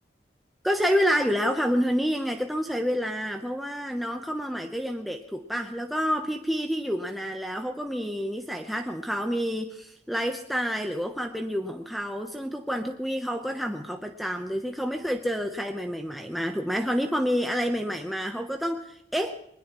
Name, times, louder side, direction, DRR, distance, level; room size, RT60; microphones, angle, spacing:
voice 1, 0.6-19.3, equal, ahead, 3 dB, 0.8 m, -28 dB
20.5 x 20.5 x 3.0 m, 0.73 s
head